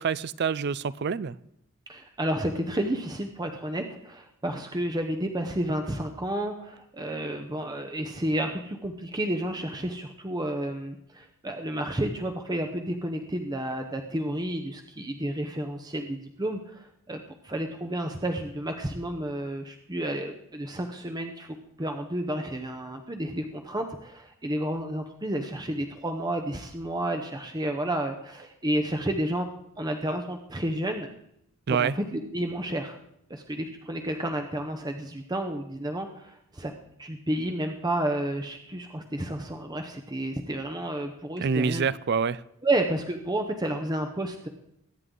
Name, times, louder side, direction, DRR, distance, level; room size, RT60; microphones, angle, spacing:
voice 1, 0.0-1.4 31.7-32.0 41.4-42.4, right 6 dB, 50° right, 20 dB, 0.4 m, -26 dB
voice 2, 1.9-29.5 29.8-31.1 31.7-33.0 33.3-36.7 37.0-41.9 42.6-44.5, right 1 dB, 20° right, 5 dB, 0.8 m, -31 dB
22.0 x 9.6 x 3.8 m, 0.77 s
head